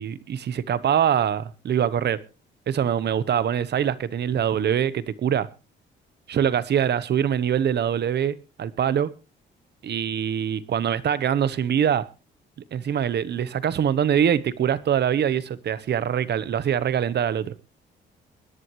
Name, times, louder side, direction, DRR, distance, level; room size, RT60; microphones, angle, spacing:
voice 1, 0.0-2.2 2.7-5.5 6.3-9.1 9.8-12.1 12.7-17.5, right 9 dB, 55° right, 1.1 m, -24 dB
20.5 x 11.0 x 3.1 m
cardioid pair, 90°, 20 cm